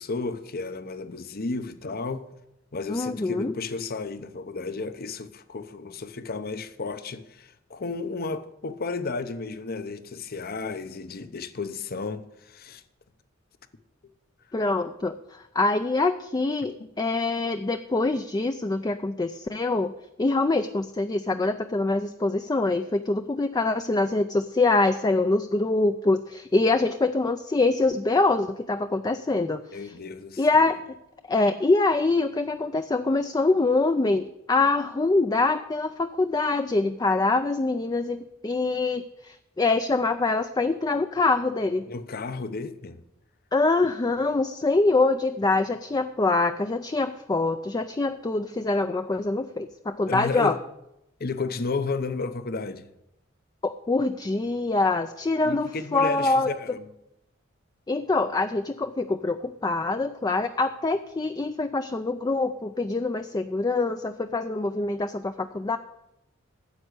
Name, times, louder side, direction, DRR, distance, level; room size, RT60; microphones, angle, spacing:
voice 1, 0.0-2.2 2.7-12.8 29.7-30.7 41.9-43.0 50.0-50.6 51.2-52.9 55.4-56.9, left 3 dB, 50° left, 0.8 m, -33 dB
voice 2, 2.9-3.5 14.5-19.9 20.2-29.8 30.4-30.8 31.3-41.9 43.5-50.5 53.6-56.5 57.9-65.8, left 3 dB, 20° left, 0.4 m, -24 dB
9.6 x 7.5 x 8.2 m
head